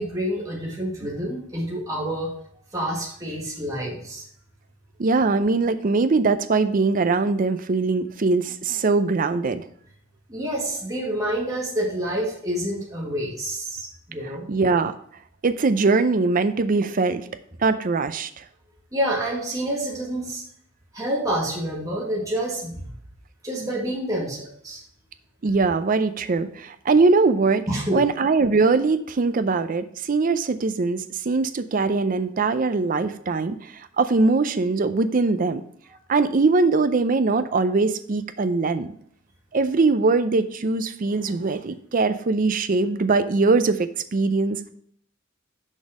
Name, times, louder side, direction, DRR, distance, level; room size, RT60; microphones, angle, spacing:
voice 1, 0.0-2.3 2.7-4.2 10.3-14.5 18.9-20.4 20.9-22.9 23.4-24.8 27.7-28.0, right 1 dB, 15° right, -4 dB, 1.7 m, -28 dB
voice 2, 5.0-9.6 14.2-14.9 15.4-17.3 17.6-18.4 25.4-27.6 27.9-35.6 36.1-38.9 39.5-44.6, right 3 dB, 40° right, 11 dB, 0.5 m, -21 dB
6.4 x 5.3 x 4.9 m, 0.64 s
head